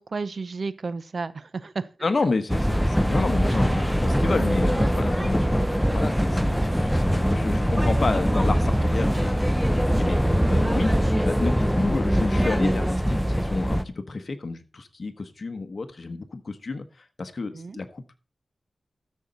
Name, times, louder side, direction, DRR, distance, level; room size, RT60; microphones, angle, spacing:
voice 1, 0.0-1.9 3.5-3.6 10.5-10.8 17.5-17.8, right 4 dB, 55° right, 0.7 m, -32 dB
voice 2, 2.0-16.8 17.2-18.0, left 3 dB, 50° left, 1.2 m, -30 dB
sound 1, 2.5-13.8, equal, ahead, 0.7 m, -22 dB
13.0 x 6.5 x 4.1 m
wide cardioid pair, 95°, 0 cm